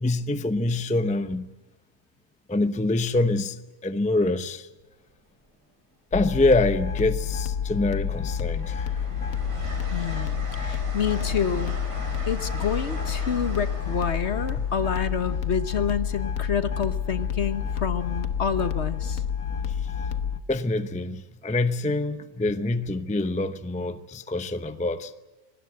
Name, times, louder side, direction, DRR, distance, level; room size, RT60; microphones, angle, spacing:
voice 1, 0.0-1.5 2.5-4.7 6.1-9.0 19.7-19.8 20.5-25.1, left 2 dB, 5° left, 0.6 m, -25 dB
Train, 4.8-5.1 6.4-7.1 7.5-16.3 17.9-18.1, right 2 dB, 70° right, 5.4 m, -41 dB
sound 1, 6.1-20.4, left 7 dB, 70° left, 1.6 m, -29 dB
voice 2, 9.9-11.7 12.3-19.2, left 7 dB, 55° left, 1.4 m, -28 dB
25.0 x 20.0 x 7.7 m
omnidirectional pair, 1.4 m